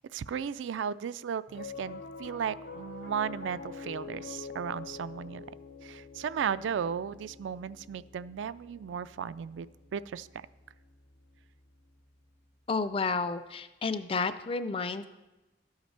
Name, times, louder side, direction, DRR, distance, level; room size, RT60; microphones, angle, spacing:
voice 1, 0.0-5.5 5.8-9.7 9.9-10.4, right 7 dB, 85° right, 16 dB, 0.3 m, -35 dB
Piano, 1.5-12.0, left 4 dB, 60° left, 0.8 m, -46 dB
voice 2, 12.7-15.1, left 4 dB, 30° left, 12 dB, 0.4 m, -31 dB
12.5 x 8.0 x 3.3 m, 1.1 s
head